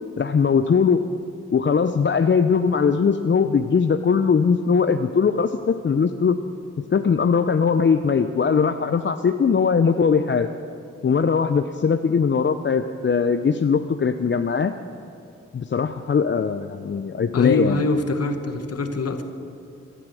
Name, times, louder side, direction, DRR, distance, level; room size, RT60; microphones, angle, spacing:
voice 1, 0.2-1.0 1.5-6.4 6.9-10.5 11.0-14.7 15.5-17.8, left 6 dB, 40° left, 8 dB, 0.7 m, -20 dB
voice 2, 17.3-19.2, left 2 dB, 55° left, 7 dB, 1.5 m, -24 dB
16.5 x 11.0 x 6.3 m, 2.8 s
supercardioid pair, 45°, 30 cm